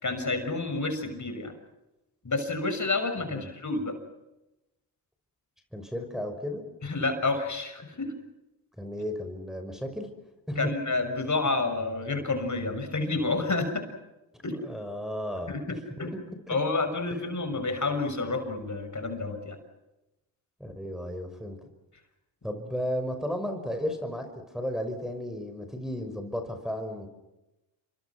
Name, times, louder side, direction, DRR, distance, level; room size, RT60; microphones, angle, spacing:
voice 1, 0.0-1.5 2.2-3.9 6.8-8.1 10.6-13.8 14.4-14.6 15.5-16.1 16.5-19.6, left 3 dB, 35° left, 7 dB, 6.5 m, -29 dB
voice 2, 5.7-6.6 8.8-10.1 10.5-10.7 14.5-15.5 16.1-16.2 16.5-16.6 17.1-17.2 20.6-21.6 22.4-27.1, equal, ahead, 4 dB, 5.7 m, -34 dB
28.0 x 24.5 x 6.1 m, 0.96 s
supercardioid pair, 50°, 47 cm